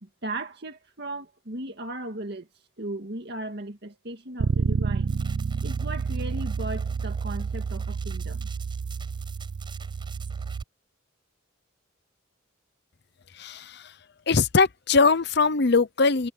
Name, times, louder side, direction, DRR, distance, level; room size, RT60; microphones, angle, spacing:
voice 1, 0.0-2.5 2.8-5.2 5.6-8.5, right 1 dB, 55° right, 2.0 m, -36 dB
Bass guitar, 4.4-10.6, right 5 dB, 75° right, 0.5 m, -29 dB
sound 1, 5.1-10.6, right 5 dB, 25° right, 6.2 m, -48 dB
voice 2, 13.3-13.9 14.3-16.3, left 4 dB, 55° left, 0.8 m, -21 dB
head